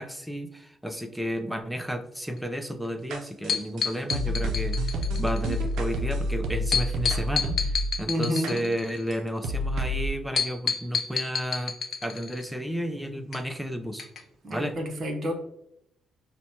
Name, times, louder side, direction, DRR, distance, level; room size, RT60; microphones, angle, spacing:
voice 1, 0.0-11.7 12.0-14.1 14.5-14.9, equal, 5° right, 7 dB, 0.5 m, -32 dB
sound 1, 3.1-8.0 8.4-8.5 9.1-9.2 9.4-10.1, equal, 80° right, 0.5 m, -28 dB
sound 2, 3.5-5.6 6.7-9.1 10.4-12.5 13.3-13.4 14.0-14.2 14.5-14.6, left 6 dB, 55° left, 0.6 m, -29 dB
voice 2, 8.1-8.6 14.4-15.3, equal, 50° right, 4 dB, 0.8 m, -29 dB
5.8 x 2.2 x 2.7 m, 0.77 s
cardioid pair, 90°, 0 cm